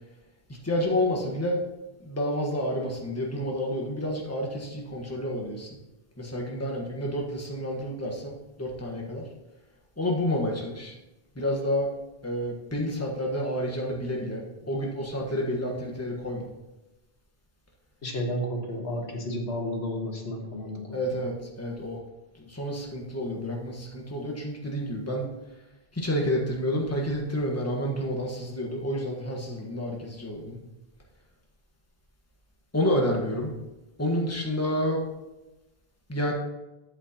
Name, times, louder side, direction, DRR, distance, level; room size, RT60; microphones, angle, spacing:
voice 1, 0.6-1.6 2.0-5.7 6.2-9.3 10.0-10.9 11.3-11.9 12.2-16.4 20.9-22.0 22.5-25.3 25.9-30.6 32.7-33.5 34.0-35.0 36.1-36.3, equal, 15° left, -1 dB, 1.4 m, -29 dB
voice 2, 18.0-21.2, equal, 85° left, 1 dB, 1.7 m, -32 dB
12.0 x 8.1 x 2.9 m, 1.0 s
omnidirectional pair, 1.0 m